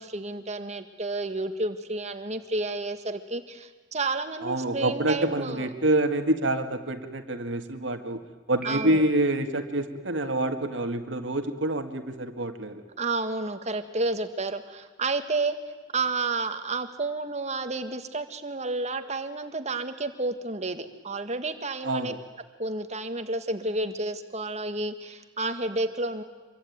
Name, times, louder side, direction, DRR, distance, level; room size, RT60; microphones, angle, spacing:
voice 1, 0.0-5.7 8.6-9.0 13.0-15.6 15.9-22.1 22.6-26.2, right 3 dB, 35° right, 8 dB, 1.8 m, -31 dB
voice 2, 4.4-8.2 8.5-12.8 21.8-22.2, right 1 dB, 70° right, 7 dB, 2.0 m, -27 dB
Piano, 8.6-9.6, right 5 dB, 5° right, 4.4 m, -42 dB
26.5 x 23.5 x 9.5 m, 1.3 s
head